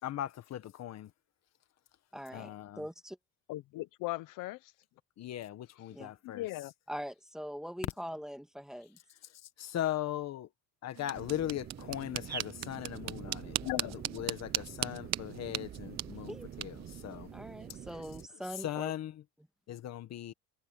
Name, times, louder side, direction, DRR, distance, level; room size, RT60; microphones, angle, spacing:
voice 1, 0.0-1.1 2.3-2.9 5.2-6.4 9.6-10.5 10.8-17.3 18.6-19.2 19.7-20.3, left 12 dB, 50° left, 1.7 m, -39 dB
voice 2, 2.1-2.5 2.8-3.2 5.9-6.1 6.9-9.0 16.3-16.5 17.3-18.9, equal, ahead, 2.1 m, -42 dB
voice 3, 3.5-4.7 6.2-6.7 13.6-14.2, left 18 dB, 70° left, 1.0 m, -38 dB
sound 1, 10.9-17.9, right 14 dB, 55° right, 1.0 m, -40 dB
sound 2, 11.1-18.3, right 8 dB, 30° right, 0.7 m, -46 dB
cardioid pair, 120°, 33 cm